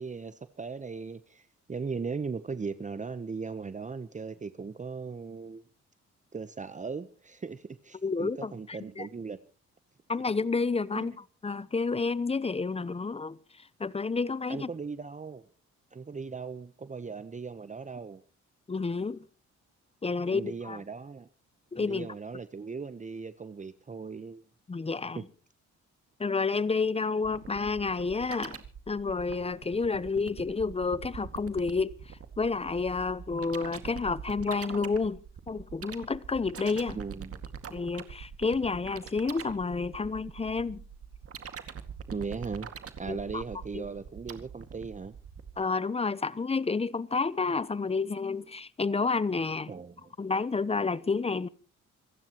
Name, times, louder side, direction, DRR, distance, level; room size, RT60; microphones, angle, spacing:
voice 1, 0.0-5.6 6.3-9.4 11.0-11.1 14.5-15.4 15.9-18.2 20.3-21.3 21.8-24.4 25.2-25.3 36.9-37.4 42.1-42.7 43.0-45.1 49.7-50.1, right 5 dB, 25° right, 0.9 m, -38 dB
voice 2, 8.0-9.1 10.1-14.7 18.7-19.3 20.0-20.8 21.7-22.1 24.7-25.2 26.2-28.6 28.9-35.2 35.5-37.0 37.7-40.8 43.1-43.4 43.7-43.8 45.6-49.7 50.2-51.5, left 4 dB, 20° left, 0.8 m, -30 dB
sound 1, 27.2-45.6, right 7 dB, 50° right, 2.1 m, -44 dB
26.5 x 15.5 x 3.0 m
cardioid pair, 90°, 30 cm